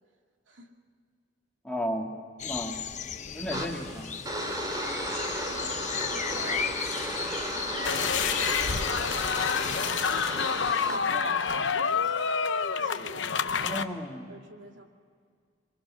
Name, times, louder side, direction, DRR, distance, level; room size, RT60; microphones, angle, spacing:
voice 1, 1.6-2.1 2.4-2.8 3.3-4.2 13.6-14.4, equal, 5° left, 0 dB, 2.2 m, -34 dB
sound 1, 2.4-9.8, left 7 dB, 40° left, 0.9 m, -36 dB
sound 2, 3.5-11.0, equal, 20° right, 2.8 m, -34 dB
voice 2, 5.4-6.8 7.5-9.2 9.8-10.4 10.9-12.2 12.8-14.0 14.3-14.8, right 2 dB, 85° right, 3 dB, 2.5 m, -45 dB
sound 3, 7.8-13.8, left 6 dB, 70° left, 0.9 m, -28 dB
27.5 x 23.5 x 6.3 m, 2.1 s
head